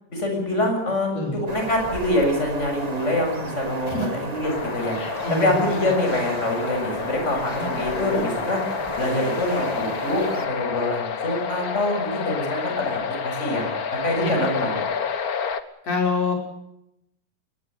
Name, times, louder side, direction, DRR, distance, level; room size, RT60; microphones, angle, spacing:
voice 1, 0.1-5.0 5.3-8.6 9.0-13.6 13.9-14.8, left 1 dB, 20° left, 3 dB, 7.1 m, -25 dB
sound 1, 1.5-10.5, right 2 dB, 20° right, 1.2 m, -34 dB
sound 2, 4.4-15.6, left 6 dB, 80° left, 0.8 m, -29 dB
voice 2, 5.0-5.9 7.6-7.7 14.2-14.3 15.8-16.3, left 3 dB, 45° left, 1 dB, 7.2 m, -26 dB
22.0 x 20.0 x 8.4 m, 0.80 s
omnidirectional pair, 3.9 m